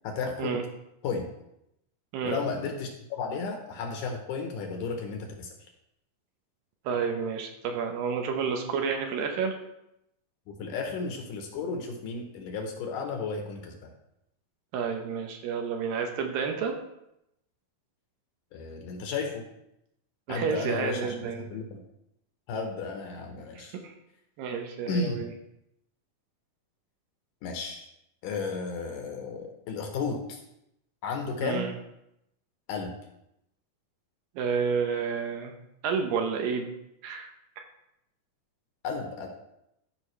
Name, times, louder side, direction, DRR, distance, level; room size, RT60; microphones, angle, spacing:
voice 1, 0.0-0.6 1.0-1.3 2.2-5.5 10.5-13.9 18.5-19.4 20.3-21.8 22.5-23.8 24.9-25.3 27.4-27.9 28.2-30.4 31.0-31.7 32.7-32.9 38.8-39.3, left 4 dB, 70° left, 3 dB, 2.3 m, -33 dB
voice 2, 6.9-9.6 14.7-16.8 20.3-21.5 23.6-23.9 24.4-25.3 31.4-31.7 34.4-35.5 35.8-36.7 37.0-37.3 37.6-37.7, right 6 dB, 75° right, 4 dB, 2.5 m, -30 dB
13.5 x 5.3 x 3.2 m, 0.82 s
omnidirectional pair, 4.2 m